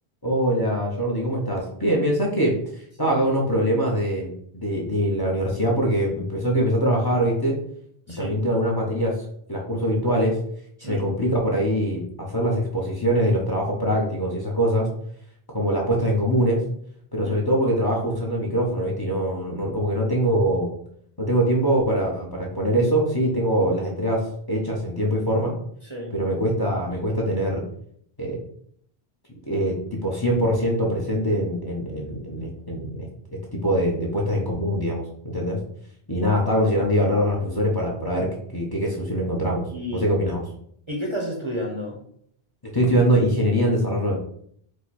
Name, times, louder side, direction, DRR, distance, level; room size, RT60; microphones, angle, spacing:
voice 1, 0.2-2.5 3.0-7.6 8.2-9.1 9.5-10.4 10.8-14.9 15.5-16.6 17.1-20.7 21.2-25.5 26.1-27.6 28.2-28.4 29.5-33.1 33.5-35.0 35.3-35.6 36.1-39.6 39.9-40.4 42.7-44.1, equal, 25° left, -2 dB, 0.8 m, -23 dB
voice 2, 39.7-40.0 40.9-42.0, equal, 30° right, -1 dB, 0.7 m, -31 dB
4.8 x 2.3 x 4.1 m, 0.65 s
omnidirectional pair, 1.1 m